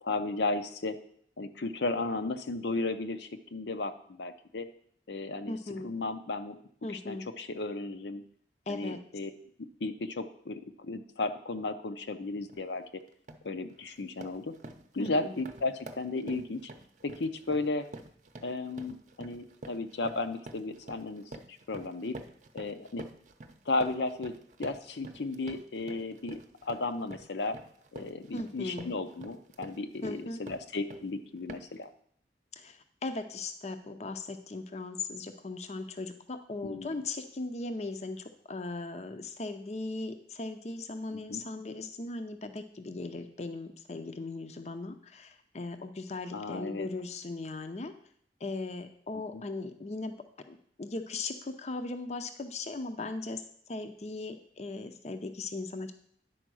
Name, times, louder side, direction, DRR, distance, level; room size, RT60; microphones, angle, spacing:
voice 1, 0.0-1.0 1.4-4.7 5.1-5.5 5.8-6.6 6.9-8.2 8.7-9.3 9.8-12.8 13.4-14.6 14.9-16.6 17.0-17.9 18.4-22.2 22.5-23.0 23.7-24.3 24.6-27.6 27.9-31.9 36.6-37.0 41.1-41.4 46.3-46.9 49.3-49.4, left 3 dB, 80° left, 8 dB, 0.7 m, -34 dB
voice 2, 5.5-5.9 6.8-7.3 8.7-9.0 15.0-15.4 28.3-28.9 30.0-30.4 32.5-47.9 48.4-50.2 50.5-55.9, left 3 dB, 40° left, 8 dB, 0.5 m, -38 dB
sound 1, 12.5-12.7 13.1-13.5 13.9-31.1 31.5-31.8, right 2 dB, 45° right, 0.7 m, -48 dB
10.0 x 4.6 x 6.2 m, 0.62 s
head